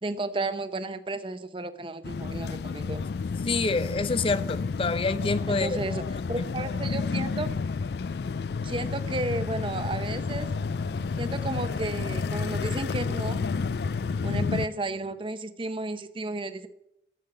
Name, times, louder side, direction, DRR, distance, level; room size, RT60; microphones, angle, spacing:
voice 1, 0.0-3.0 5.5-7.5 8.6-10.5 11.2-13.4 14.2-16.7, right 2 dB, 30° right, 0.8 m, -33 dB
sound 1, 2.0-14.7, left 4 dB, 70° left, 0.4 m, -30 dB
voice 2, 3.4-5.8 6.4-6.5, left 3 dB, 30° left, 0.6 m, -27 dB
sound 2, 10.7-15.1, equal, 55° right, 1.9 m, -49 dB
13.5 x 7.4 x 8.8 m
head